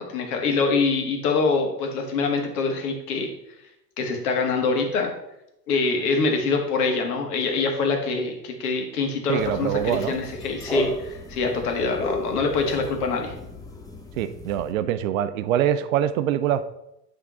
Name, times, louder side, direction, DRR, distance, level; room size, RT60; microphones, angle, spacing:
voice 1, 0.0-3.3 4.0-5.1 5.7-13.3, left 4 dB, 60° left, 3 dB, 1.7 m, -24 dB
voice 2, 9.3-10.2 14.2-16.6, right 11 dB, 55° right, 12 dB, 0.6 m, -24 dB
sound 1, 9.4-14.7, left 1 dB, 5° left, 1.0 m, -33 dB
9.2 x 3.7 x 4.2 m, 0.84 s
figure-of-eight pair, 80°, 49 cm